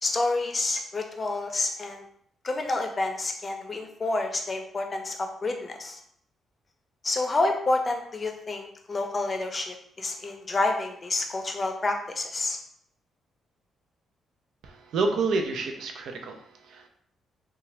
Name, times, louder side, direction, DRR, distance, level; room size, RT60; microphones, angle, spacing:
voice 1, 0.0-2.0 2.4-6.0 7.0-12.6, left 2 dB, 35° left, 4 dB, 0.5 m, -29 dB
voice 2, 14.6-16.9, right 3 dB, 75° right, 4 dB, 0.5 m, -29 dB
2.8 x 2.3 x 3.1 m, 0.65 s
supercardioid pair, 70°, 0 cm